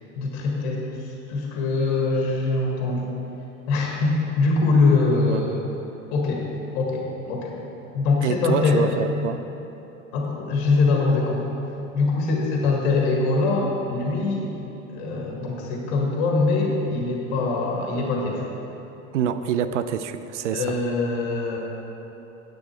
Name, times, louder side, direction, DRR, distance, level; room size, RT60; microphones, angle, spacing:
voice 1, 0.1-3.2 3.7-5.7 6.1-6.5 6.7-7.6 7.9-8.9 10.1-11.6 11.9-14.5 14.9-18.5 20.5-21.6, left 3 dB, 55° left, -1 dB, 1.7 m, -23 dB
voice 2, 8.2-9.4 19.1-20.8, right 8 dB, 65° right, 11 dB, 0.6 m, -26 dB
10.0 x 7.9 x 4.6 m, 3.0 s
figure-of-eight pair, 70°, 38 cm